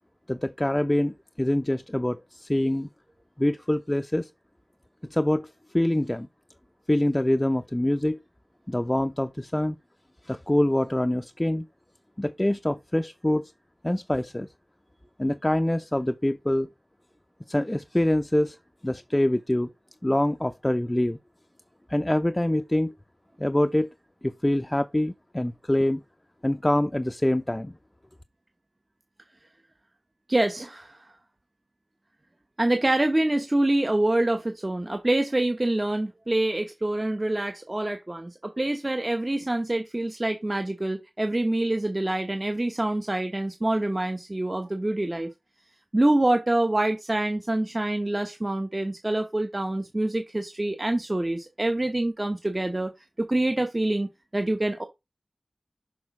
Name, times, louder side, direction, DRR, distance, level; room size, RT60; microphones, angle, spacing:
voice 1, 0.3-2.9 3.4-4.3 5.1-5.5 5.7-6.3 6.9-8.2 8.7-9.8 10.2-11.6 12.2-13.5 13.8-14.5 15.2-16.7 17.5-18.6 18.8-19.7 20.0-21.2 21.9-22.9 23.4-23.9 24.2-26.0 26.4-27.7, left 1 dB, 20° left, 0.5 m, -25 dB
voice 2, 30.3-31.1 32.6-45.3 45.9-52.9 53.2-54.1 54.3-54.8, right 1 dB, 30° right, 1.0 m, -26 dB
6.3 x 3.9 x 6.0 m
wide cardioid pair, 55°, 0 cm